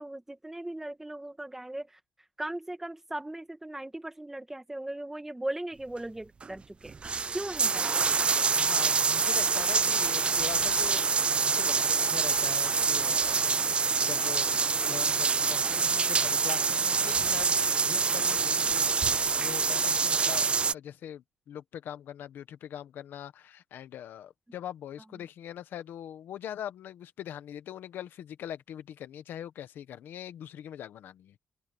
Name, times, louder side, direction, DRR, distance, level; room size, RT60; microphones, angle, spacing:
voice 1, 0.0-1.9 2.4-6.9 7.3-7.9, right 1 dB, 10° right, 1.9 m, -38 dB
sound 1, 6.4-6.5 6.9-20.7, right 5 dB, 30° right, 0.5 m, -26 dB
voice 2, 8.6-13.7 14.0-14.5 14.8-31.3, left 10 dB, 80° left, 1.5 m, -42 dB
open air
cardioid pair, 130°, 3 cm